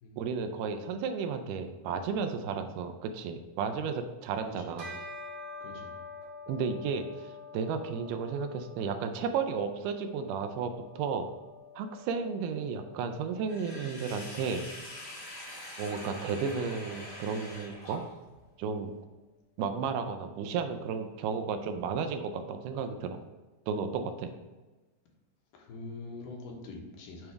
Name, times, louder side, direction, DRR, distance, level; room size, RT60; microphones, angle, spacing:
voice 1, 0.2-4.9 6.5-11.3 11.8-14.6 15.8-18.0 18.6-18.9 19.6-23.2 23.7-24.3, right 5 dB, 80° right, 7 dB, 2.1 m, -33 dB
voice 2, 4.4-4.9 5.6-6.0 25.5-27.3, left 3 dB, 85° left, -1 dB, 2.8 m, -44 dB
Bell, 4.8-14.5, left 3 dB, 50° right, 1.5 m, -48 dB
Sink (filling or washing), 13.5-18.4, left 1 dB, 50° left, 3.1 m, -44 dB
8.8 x 3.3 x 3.4 m, 1.2 s
omnidirectional pair, 3.8 m